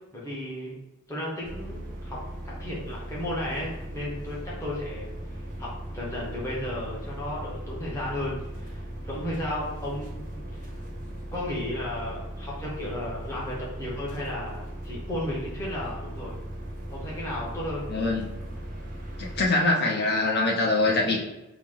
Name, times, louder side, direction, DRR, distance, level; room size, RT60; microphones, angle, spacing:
voice 1, 0.1-0.7 1.1-2.2 2.4-5.1 5.6-8.8 9.0-10.8 11.3-16.4 16.9-17.8, left 1 dB, 15° left, -6 dB, 0.9 m, -34 dB
sound 1, 1.4-19.5, right 1 dB, 35° right, 0.6 m, -38 dB
voice 2, 17.9-18.2 19.2-21.2, left 2 dB, 50° left, -2 dB, 0.8 m, -23 dB
4.5 x 2.1 x 3.7 m, 0.97 s
head